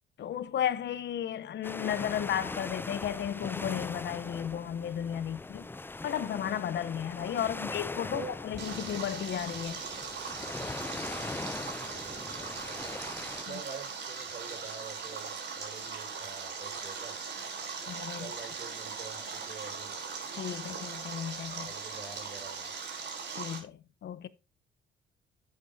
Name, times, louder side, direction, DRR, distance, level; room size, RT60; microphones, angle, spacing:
voice 1, 0.2-5.7 6.0-9.8 17.9-18.3 20.4-21.7 23.4-24.3, left 10 dB, 65° left, 0.8 m, -34 dB
sound 1, 1.6-13.4, left 3 dB, 10° left, 0.4 m, -40 dB
voice 2, 7.5-8.4 12.0-13.0 13.5-17.2 18.2-19.9 21.6-22.7, right 5 dB, 40° right, 4.8 m, -46 dB
Stream, 8.6-23.6, right 5 dB, 60° right, 3.5 m, -40 dB
10.5 x 8.2 x 2.7 m
cardioid pair, 90°, 20 cm